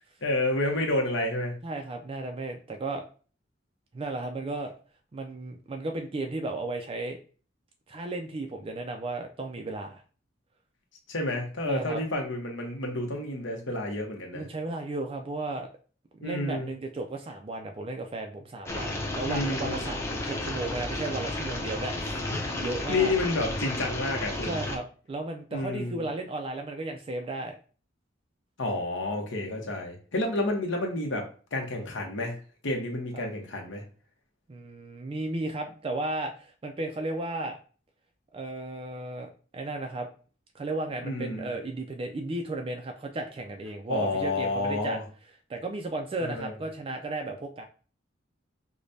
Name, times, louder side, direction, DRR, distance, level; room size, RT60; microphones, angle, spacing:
voice 1, 0.2-1.5 11.1-14.5 16.2-16.7 19.2-19.8 22.3-22.5 22.9-24.6 25.5-26.0 28.6-31.3 31.5-33.8 41.0-41.5 43.9-45.0 46.2-46.5, left 2 dB, 70° left, 1 dB, 1.0 m, -30 dB
voice 2, 1.6-3.0 3.9-4.7 5.1-7.2 7.9-10.0 11.7-12.0 14.3-15.7 16.1-22.3 22.6-23.1 24.5-27.6 33.1-33.3 34.5-37.6 38.3-40.1 40.5-45.0 45.5-47.6, right 2 dB, 30° right, 4 dB, 0.4 m, -34 dB
sound 1, 18.7-24.8, left 2 dB, 15° left, 0.6 m, -33 dB
5.0 x 2.2 x 2.6 m, 0.38 s
head